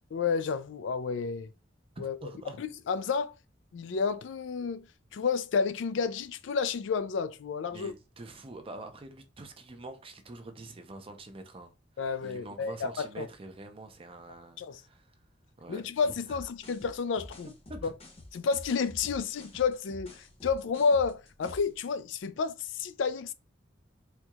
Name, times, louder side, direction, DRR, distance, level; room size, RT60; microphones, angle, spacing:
voice 1, 0.1-1.5 2.0-2.3 2.6-3.3 3.7-4.9 5.1-7.9 12.0-13.3 14.6-14.8 15.7-17.5 18.3-23.3, left 5 dB, 85° left, 0.4 m, -30 dB
voice 2, 2.0-2.6 7.7-15.1 15.6-16.4 17.7-17.9, right 2 dB, 30° right, 0.6 m, -46 dB
sound 1, 16.3-21.8, left 1 dB, 35° left, 0.8 m, -47 dB
4.4 x 2.8 x 2.3 m
head